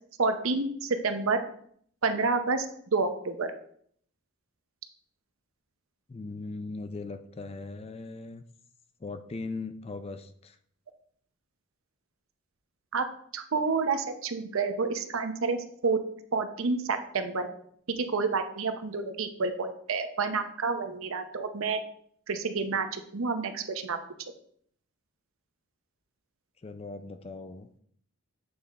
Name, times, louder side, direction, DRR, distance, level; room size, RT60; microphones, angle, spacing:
voice 1, 0.2-1.4 2.0-2.7 2.9-3.5 12.9-13.0 13.3-15.6 15.8-16.0 16.3-17.5 18.0-21.8 22.3-24.0, right 4 dB, 65° right, 8 dB, 0.7 m, -29 dB
voice 2, 6.1-8.4 9.0-10.6 26.6-27.7, left 3 dB, 25° left, 9 dB, 0.4 m, -39 dB
7.8 x 3.7 x 4.1 m, 0.63 s
head